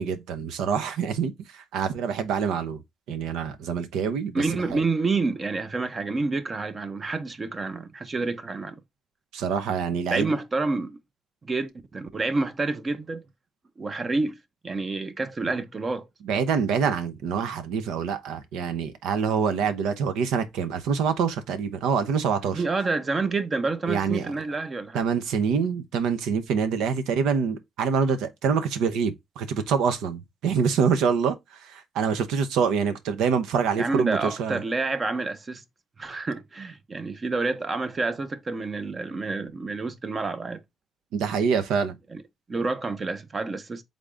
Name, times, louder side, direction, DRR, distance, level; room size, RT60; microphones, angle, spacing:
voice 1, 0.0-2.8 3.1-4.3 4.7-4.8 9.3-10.3 16.3-22.6 23.9-24.3 24.9-31.4 31.6-34.6 41.1-42.0, right 6 dB, 90° right, 0.6 m, -25 dB
voice 2, 4.3-8.8 10.1-11.0 11.4-13.2 13.8-14.4 14.6-16.1 22.4-25.0 33.8-35.6 36.0-40.6 42.1-42.2 42.5-43.8, right 3 dB, 35° right, 0.6 m, -28 dB
3.7 x 3.4 x 3.8 m
cardioid pair, 90°, 0 cm